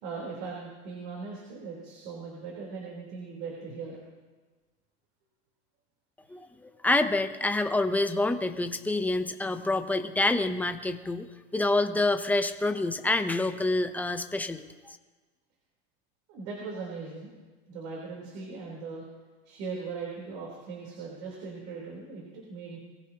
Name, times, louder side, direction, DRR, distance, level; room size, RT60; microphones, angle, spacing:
voice 1, 0.0-4.0 6.2-6.3 16.3-17.3 17.7-19.0 19.5-22.8, right 4 dB, 65° right, -3 dB, 4.0 m, -39 dB
voice 2, 6.3-15.0, left 2 dB, 5° left, 8 dB, 0.8 m, -27 dB
22.5 x 15.5 x 3.0 m, 1.3 s
supercardioid pair, 115°, 34 cm